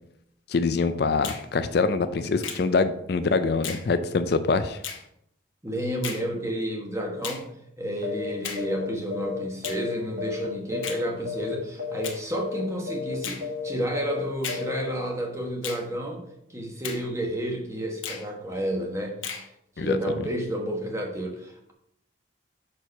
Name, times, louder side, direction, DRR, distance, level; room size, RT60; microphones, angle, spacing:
voice 1, 0.5-4.8 19.8-20.0, left 4 dB, 55° left, 10 dB, 0.4 m, -24 dB
Finger snapping, 1.2-1.5 2.4-2.7 3.6-3.9 4.8-5.0 6.0-6.3 7.2-7.5 8.4-8.7 9.6-9.8 10.8-11.0 12.0-12.2 13.2-13.5 14.4-14.7 15.6-15.9 16.8-17.1 18.0-18.3 19.2-19.5, left 7 dB, 85° left, 1.0 m, -35 dB
voice 2, 5.6-7.5 7.8-16.2 16.5-19.2 19.8-21.7, right 1 dB, 15° right, 1 dB, 1.1 m, -31 dB
sound 1, 8.0-8.3 8.6-8.8 9.1-10.5 10.7-11.0 11.2-11.5 11.8-12.1 12.3-12.6 12.9-13.1 13.4-13.7 13.9-14.2 14.5-14.8, left 4 dB, 45° right, 1.4 m, -32 dB
6.1 x 4.6 x 5.3 m, 0.76 s
head